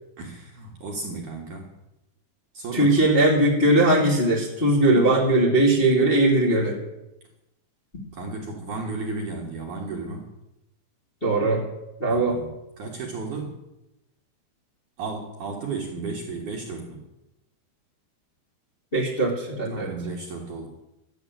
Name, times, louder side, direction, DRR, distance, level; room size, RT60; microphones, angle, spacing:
voice 1, 0.2-1.7 2.5-2.9 8.1-10.3 12.1-13.6 15.0-17.0 19.7-20.7, right 3 dB, 55° right, -1 dB, 2.6 m, -34 dB
voice 2, 2.7-6.8 11.2-11.6 12.0-12.4 18.9-19.9, right 1 dB, 15° left, -4 dB, 2.0 m, -20 dB
13.5 x 7.9 x 9.1 m, 0.92 s
omnidirectional pair, 5.4 m